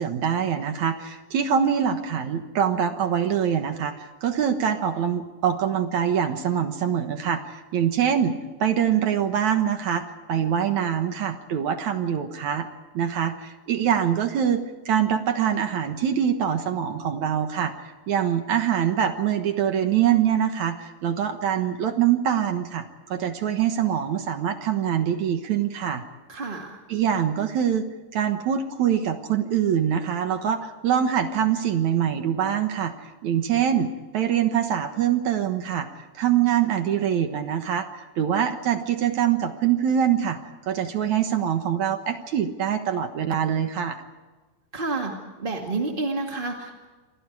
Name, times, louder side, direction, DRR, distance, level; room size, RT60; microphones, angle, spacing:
voice 1, 0.0-12.7 12.9-26.0 26.9-27.9 28.1-32.9 33.2-35.9 36.1-40.4 40.7-44.0, right 9 dB, 60° right, 7 dB, 2.2 m, -24 dB
voice 2, 26.3-26.8 44.7-45.1 45.4-46.8, right 3 dB, 25° right, 1 dB, 1.3 m, -29 dB
28.5 x 24.0 x 4.8 m, 1.3 s
omnidirectional pair, 4.4 m